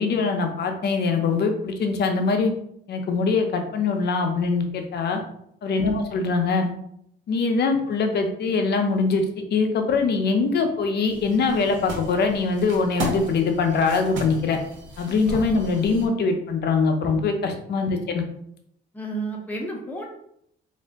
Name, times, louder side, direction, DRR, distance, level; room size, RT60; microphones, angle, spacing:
voice 1, 0.0-2.5 2.9-5.2 5.6-6.7 7.3-9.3 9.5-14.6 15.0-18.2, left 4 dB, 55° left, 4 dB, 0.6 m, -23 dB
sound 1, 11.0-16.1, right 1 dB, 75° right, 0.9 m, -35 dB
voice 2, 18.9-20.1, right 2 dB, 10° left, -2 dB, 0.7 m, -31 dB
2.5 x 2.1 x 3.5 m, 0.71 s
cardioid pair, 90°, 20 cm